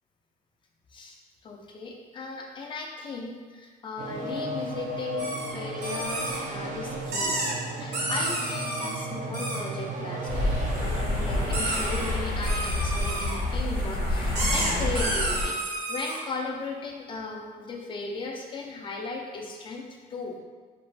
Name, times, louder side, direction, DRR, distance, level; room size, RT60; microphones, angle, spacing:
voice 1, 1.4-5.3 5.5-7.4 7.8-20.4, left 3 dB, 30° left, 0 dB, 0.4 m, -37 dB
sound 1, 4.0-11.6, right 2 dB, 45° right, 0.4 m, -35 dB
sound 2, 5.2-5.5 5.8-6.4 7.1-7.5 7.9-9.0 9.3-9.6 10.7-11.0 11.5-12.2 12.4-13.4 14.3-16.2, right 2 dB, 75° right, 0.8 m, -31 dB
sound 3, 10.3-15.4, left 1 dB, 50° left, 0.9 m, -28 dB
2.5 x 2.4 x 3.2 m, 1.5 s
cardioid pair, 110°, 17 cm